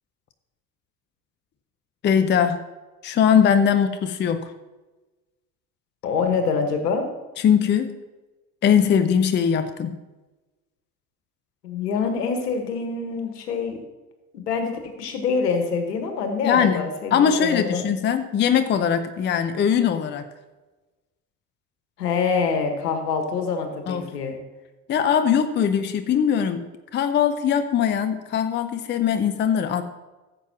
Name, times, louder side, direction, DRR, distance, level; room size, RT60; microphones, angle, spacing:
voice 1, 2.0-2.6 3.0-4.5 7.4-8.0 8.6-10.0 16.4-20.2 23.9-24.1 24.9-29.8, left 8 dB, 20° left, 10 dB, 0.6 m, -21 dB
voice 2, 6.0-7.1 11.6-13.8 14.3-17.9 22.0-24.4, left 5 dB, 70° left, 5 dB, 1.6 m, -25 dB
15.5 x 7.7 x 2.9 m, 1.2 s
figure-of-eight pair, 65°, 49 cm